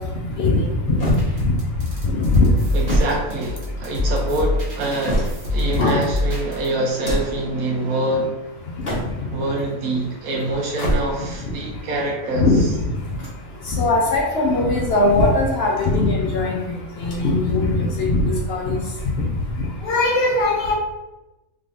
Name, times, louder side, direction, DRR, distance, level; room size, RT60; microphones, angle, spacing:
voice 1, 0.4-1.2 1.4-1.5 2.0-2.6 5.7-5.9 12.3-12.6 13.7-18.8 19.2-19.3 19.8-20.7, left 2 dB, 60° left, -2 dB, 0.7 m, -19 dB
sound 1, 1.0-1.8 2.6-4.0 4.6-5.7 6.8-7.5 8.6-9.4 10.6-11.4 12.9-13.9 14.8-15.7 16.9-17.5 17.8-17.9 18.9-19.7, equal, 30° left, 0.9 m, -28 dB
sound 2, 1.2-6.7, left 1 dB, 55° right, 1.2 m, -26 dB
voice 2, 2.7-8.3 9.3-12.5, right 2 dB, 85° right, 0 dB, 1.2 m, -25 dB
3.6 x 3.3 x 2.6 m, 1.0 s
omnidirectional pair, 1.5 m